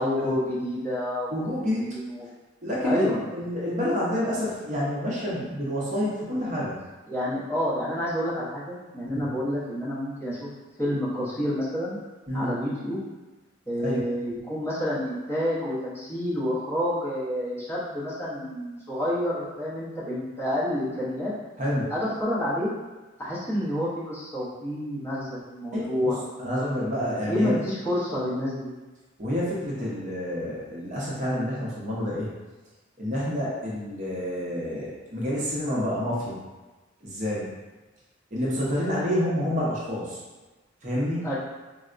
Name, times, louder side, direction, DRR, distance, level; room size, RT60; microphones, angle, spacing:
voice 1, 0.0-1.3 1.7-2.2 2.8-3.2 7.1-10.5 10.8-12.0 12.3-13.0 13.7-21.3 21.9-22.7 23.2-26.2 27.3-28.7 41.2-41.3, equal, 15° left, -10 dB, 0.7 m, -28 dB
voice 2, 1.3-1.9 2.6-3.0 3.3-6.8 9.1-9.2 12.3-12.5 13.8-14.0 21.6-21.9 25.7-25.9 26.4-27.6 29.2-32.3 33.0-36.4 37.0-37.5 38.3-40.2 40.8-41.3, equal, 40° right, -6 dB, 0.6 m, -28 dB
4.2 x 2.0 x 2.4 m, 1.2 s
head